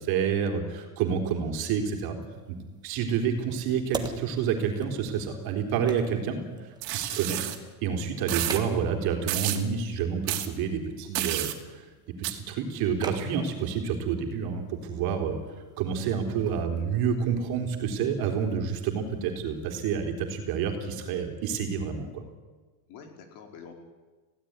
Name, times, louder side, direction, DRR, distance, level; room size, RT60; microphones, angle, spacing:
voice 1, 0.0-2.2 2.5-2.6 2.8-6.4 6.9-7.4 7.8-11.8 12.3-15.4 15.8-22.2, right 7 dB, 45° right, 4 dB, 4.0 m, -28 dB
sound 1, 2.2-19.8, right 3 dB, 10° right, 1.6 m, -46 dB
sound 2, 6.8-7.6 8.3-8.6 9.3-9.6 10.3-10.5 11.1-11.6 12.2-12.3, right 15 dB, 75° right, 2.8 m, -30 dB
voice 2, 7.0-7.5 22.9-23.7, left 6 dB, 55° left, 3 dB, 4.9 m, -48 dB
21.0 x 16.5 x 9.7 m, 1.3 s
cardioid pair, 160°, 50 cm